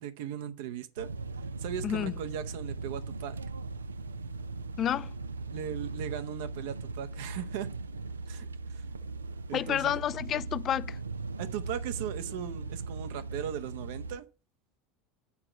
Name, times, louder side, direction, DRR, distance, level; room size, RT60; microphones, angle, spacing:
voice 1, 0.0-1.1 1.6-3.4 5.5-7.7 8.3-8.8 9.5-9.9 11.4-14.2, right 10 dB, 60° right, 0.8 m, -38 dB
sound 1, 1.0-14.2, right 3 dB, 80° right, 0.4 m, -39 dB
voice 2, 4.8-5.1 9.5-11.0, left 10 dB, 35° left, 0.4 m, -30 dB
7.2 x 4.8 x 6.8 m
figure-of-eight pair, 75°, 0 cm